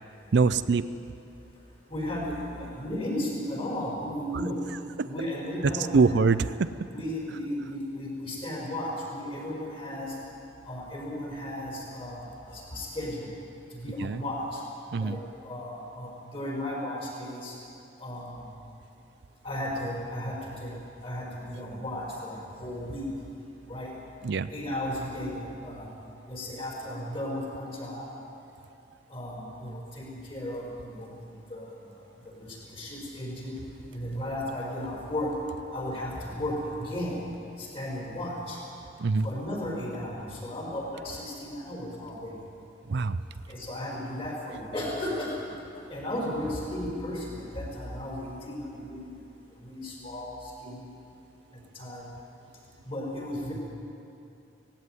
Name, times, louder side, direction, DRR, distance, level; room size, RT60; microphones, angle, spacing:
voice 1, 0.3-0.9 5.0-5.1 5.6-6.7 14.0-14.2 14.9-15.2 24.2-24.5 39.0-39.3 42.9-43.2, right 4 dB, 60° right, 13 dB, 0.5 m, -24 dB
voice 2, 1.9-4.6 5.0-6.2 6.9-10.2 10.7-13.3 13.7-14.6 15.0-15.2 15.4-17.5 18.0-18.4 19.4-20.7 21.0-23.1 23.7-23.9 24.5-25.9 26.3-28.1 29.1-31.7 32.2-33.5 33.9-35.3 35.7-37.2 37.6-38.6 39.2-42.3 43.5-45.5 45.9-49.1 49.6-50.9 51.7-52.1 52.8-53.5, left 1 dB, 30° left, -3 dB, 5.8 m, -35 dB
18.0 x 16.0 x 9.6 m, 2.7 s
head